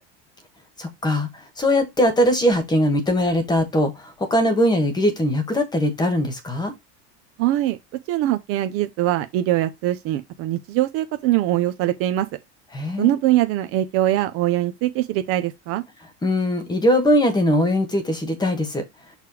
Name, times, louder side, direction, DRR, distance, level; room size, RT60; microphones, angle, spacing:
voice 1, 0.8-6.7 12.7-13.2 16.2-18.8, equal, 10° left, 1.4 m, -21 dB
voice 2, 7.4-7.8 8.1-12.3 13.0-15.8, right 14 dB, 40° right, 0.6 m, -22 dB
6.5 x 3.4 x 4.8 m
cardioid pair, 160°, 34 cm